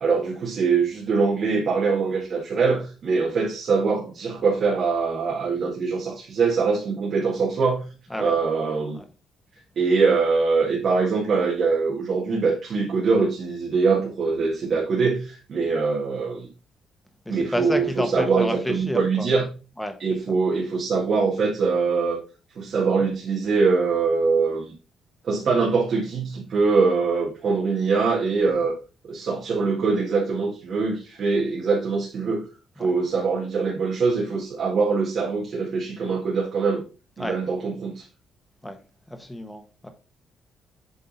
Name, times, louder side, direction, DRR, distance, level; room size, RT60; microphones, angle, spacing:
voice 1, 0.0-7.8 8.2-9.0 9.8-16.5 17.3-19.5 20.0-22.2 22.6-24.7 25.2-28.7 29.0-32.4 32.8-36.8 37.2-38.0, right 4 dB, 60° right, 1.9 m, -23 dB
voice 2, 17.2-19.3 19.8-19.9 32.8-32.9 37.2-37.4 38.6-38.8 39.1-39.9, left 1 dB, 10° left, 1.4 m, -30 dB
8.1 x 3.7 x 4.1 m
cardioid pair, 90°, 0 cm